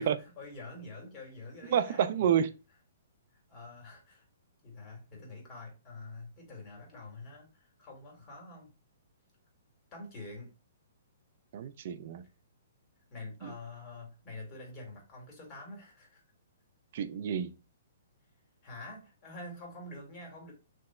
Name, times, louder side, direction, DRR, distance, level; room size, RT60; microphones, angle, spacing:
voice 1, 0.0-2.3 3.5-4.3 4.6-8.7 9.9-10.5 13.1-16.2 18.6-20.5, left 2 dB, 25° left, 1.9 m, -46 dB
voice 2, 1.7-2.5 11.5-12.2 16.9-17.5, right 8 dB, 50° right, 0.5 m, -29 dB
3.4 x 2.9 x 4.3 m
hypercardioid pair, 160°, 0 cm